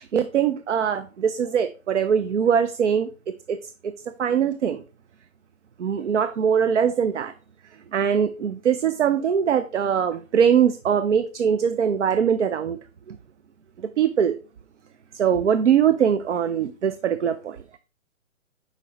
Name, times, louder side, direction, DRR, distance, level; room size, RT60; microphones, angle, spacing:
voice 1, 0.0-3.1 3.5-3.6 3.8-4.8 5.8-7.3 7.9-12.8 13.1-13.2 14.0-14.4 15.1-17.6, right 8 dB, 60° right, 0.6 m, -22 dB
8.2 x 5.1 x 3.0 m
figure-of-eight pair, 140°, 40 cm